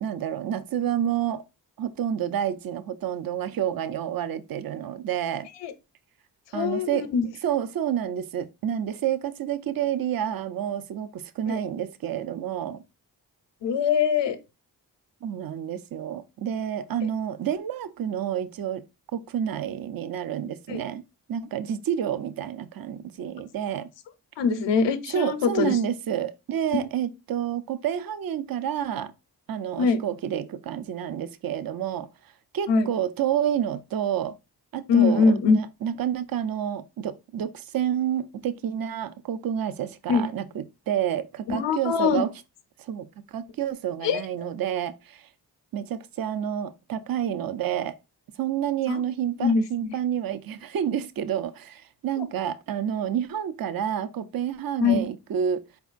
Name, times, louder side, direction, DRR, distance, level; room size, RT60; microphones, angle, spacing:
voice 1, 0.0-1.4 1.8-5.5 6.5-7.1 7.4-12.8 15.2-18.8 19.1-21.0 21.3-23.9 25.1-29.1 29.5-32.1 32.5-34.4 34.7-42.3 42.8-45.3 45.7-48.0 48.4-55.6, right 9 dB, 55° right, 0.5 m, -29 dB
voice 2, 6.5-7.2 11.5-11.6 13.6-14.4 20.7-20.8 24.4-25.8 26.7-26.8 29.8-30.0 32.7-32.9 34.9-35.6 40.1-40.3 41.5-42.2 44.0-44.2 48.9-49.0 49.4-49.9 52.2-52.3 54.8-55.1, left 5 dB, 80° left, 0.6 m, -22 dB
4.3 x 3.5 x 2.4 m
cardioid pair, 45°, 42 cm